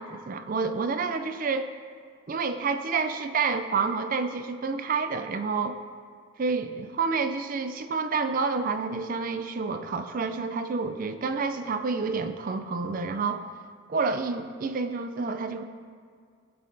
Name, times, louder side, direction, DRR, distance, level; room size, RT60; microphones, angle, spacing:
voice 1, 0.0-1.7 2.3-5.8 6.4-13.4 13.9-15.6, right 4 dB, 40° right, 8 dB, 0.3 m, -29 dB
15.0 x 5.5 x 2.6 m, 2.1 s
head